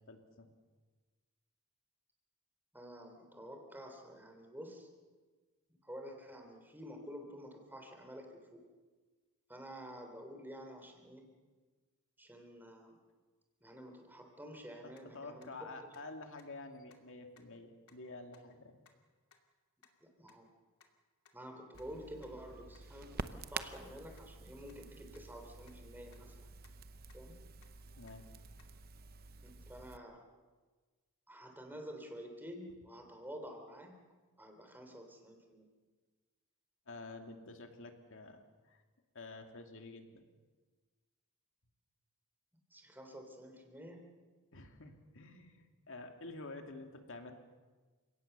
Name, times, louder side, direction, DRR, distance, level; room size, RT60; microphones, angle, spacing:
voice 1, 0.1-0.5 14.8-18.7 28.0-28.3 36.9-38.8 39.1-40.2 44.5-47.3, left 2 dB, 60° left, 5 dB, 2.4 m, -49 dB
voice 2, 2.7-4.9 5.8-8.7 9.5-11.3 12.2-12.9 13.6-15.5 20.0-20.5 21.3-26.5 27.1-27.4 29.4-30.2 31.3-33.9 34.4-35.7 42.7-44.1, equal, 10° right, 4 dB, 3.3 m, -50 dB
sound 1, 15.0-15.1 15.4-15.5 15.9-16.0 16.4-16.5 16.9-17.0 17.4-17.5 17.9-18.0 18.3-18.5 18.9-19.0 19.3-19.4 19.8-19.9 20.3-20.4 20.8-20.9 21.3-21.4 21.8-21.9 22.2-22.3 22.8-22.9 23.2-23.3 23.7-23.8 24.2-24.3 24.7-24.8 25.1-25.2 25.7-25.8 26.1-26.2 26.6-26.7 27.1-27.2 27.6-27.7 28.1-28.2 28.6-28.7, left 7 dB, 85° left, 2.5 m, -65 dB
Crackle, 21.7-30.0, right 4 dB, 45° right, 0.8 m, -49 dB
30.0 x 17.5 x 6.8 m, 1.4 s
head